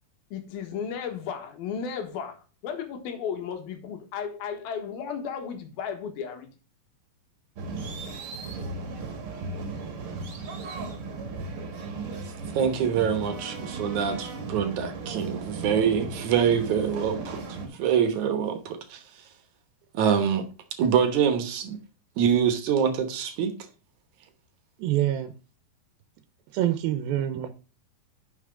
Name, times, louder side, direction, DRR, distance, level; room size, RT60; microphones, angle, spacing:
voice 1, 0.3-6.5, left 7 dB, 80° left, 3.4 m, -34 dB
sound 1, 7.6-17.7, right 3 dB, 45° right, 2.1 m, -36 dB
voice 2, 12.5-19.0 19.9-20.5 20.8-21.8 22.2-23.6, right 7 dB, 65° right, 2.2 m, -25 dB
voice 3, 24.8-25.3 26.5-27.5, right 12 dB, 85° right, 2.6 m, -26 dB
11.0 x 5.9 x 3.7 m
omnidirectional pair, 4.2 m